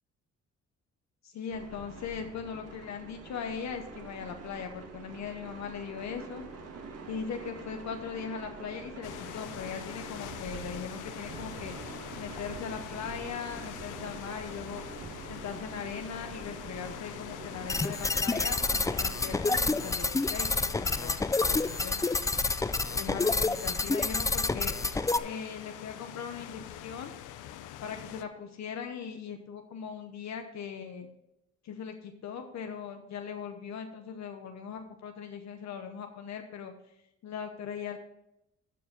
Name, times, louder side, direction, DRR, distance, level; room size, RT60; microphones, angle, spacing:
voice 1, 1.2-6.4 7.1-11.7 12.2-14.8 15.3-22.0 22.9-24.8 25.2-27.1 27.8-31.1 31.6-36.7 37.2-38.0, left 7 dB, 65° left, 6 dB, 0.9 m, -39 dB
sound 1, 1.5-19.4, right 4 dB, 55° right, 1.8 m, -45 dB
sound 2, 9.0-28.2, left 12 dB, 90° left, 0.7 m, -45 dB
sound 3, 17.7-25.2, left 3 dB, 10° left, 0.4 m, -28 dB
13.5 x 4.7 x 5.3 m, 0.85 s
cardioid pair, 90°, 30 cm